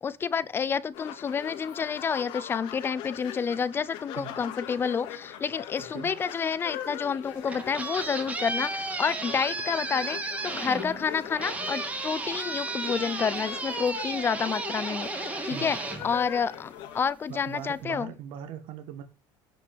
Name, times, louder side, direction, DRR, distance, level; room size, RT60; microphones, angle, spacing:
voice 1, 0.0-18.1, left 6 dB, 25° left, 0.5 m, -29 dB
sound 1, 0.9-17.0, left 11 dB, 70° left, 2.3 m, -42 dB
voice 2, 5.8-6.1 15.5-15.8 17.3-19.0, right 9 dB, 65° right, 1.9 m, -40 dB
sound 2, 7.2-16.9, right 3 dB, 15° right, 1.9 m, -34 dB
11.0 x 6.0 x 6.8 m
cardioid pair, 145°, 9 cm